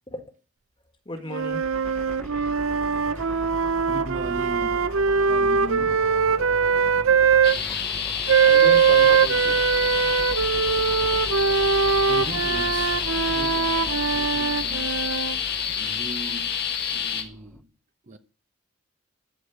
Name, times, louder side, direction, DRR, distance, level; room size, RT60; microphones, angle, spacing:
voice 1, 1.1-2.2 8.5-9.6, left 1 dB, 25° left, 1.8 m, -36 dB
sound 1, 1.3-7.6 8.3-15.4, right 6 dB, 85° right, 0.6 m, -21 dB
sound 2, 1.4-17.6, equal, 5° left, 0.7 m, -39 dB
voice 2, 3.9-6.2 12.1-15.1 15.7-16.7 16.9-17.7 18.0-18.2, right 1 dB, 40° right, 0.9 m, -39 dB
sound 3, 7.4-17.2, left 7 dB, 55° left, 1.7 m, -28 dB
14.0 x 5.0 x 9.2 m
head